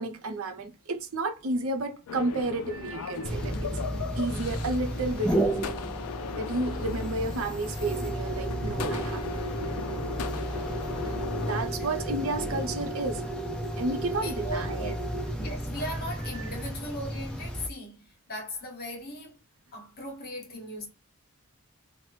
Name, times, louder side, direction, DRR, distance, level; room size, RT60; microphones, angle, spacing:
voice 1, 0.0-3.7 4.2-5.7 6.3-9.6 11.0-13.3 13.8-14.9, right 2 dB, 65° right, 0.6 m, -32 dB
sound 1, 2.1-11.6, left 5 dB, 85° left, 0.4 m, -38 dB
sound 2, 3.2-17.7, right 1 dB, 5° left, 0.4 m, -32 dB
voice 2, 11.1-12.2 14.2-15.0 15.3-19.4 19.7-20.9, equal, 45° left, 1.1 m, -39 dB
3.0 x 2.0 x 3.1 m
head